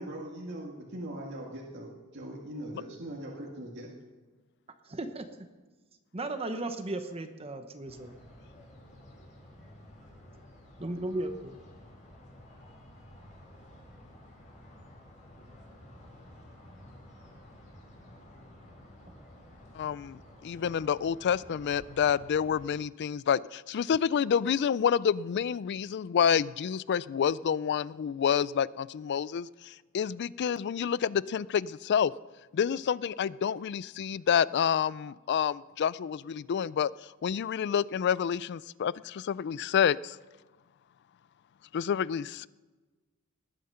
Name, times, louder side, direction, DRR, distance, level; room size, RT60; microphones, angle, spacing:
voice 1, 0.0-3.9, right 1 dB, 55° right, -2 dB, 2.0 m, -41 dB
voice 2, 4.8-5.3 6.1-8.1 10.8-11.6, right 2 dB, 30° right, 8 dB, 0.9 m, -35 dB
sound 1, 7.8-22.7, left 1 dB, 35° left, 4.8 m, -52 dB
voice 3, 19.7-32.1 32.5-36.9 37.2-40.2 41.7-42.5, left 8 dB, 55° left, 21 dB, 0.3 m, -28 dB
19.5 x 9.4 x 5.6 m, 1.3 s
head